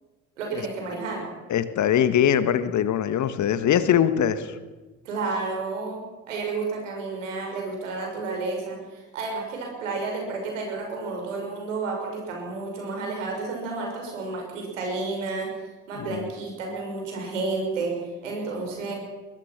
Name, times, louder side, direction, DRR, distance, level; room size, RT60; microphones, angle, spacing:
voice 1, 0.4-1.2 5.0-15.5 15.9-17.9 18.2-18.9, right 3 dB, 80° right, 1 dB, 6.1 m, -31 dB
voice 2, 1.5-4.6 16.0-16.3, left 9 dB, 50° left, 12 dB, 1.7 m, -22 dB
21.5 x 20.5 x 6.0 m, 1.3 s
hypercardioid pair, 55°, 37 cm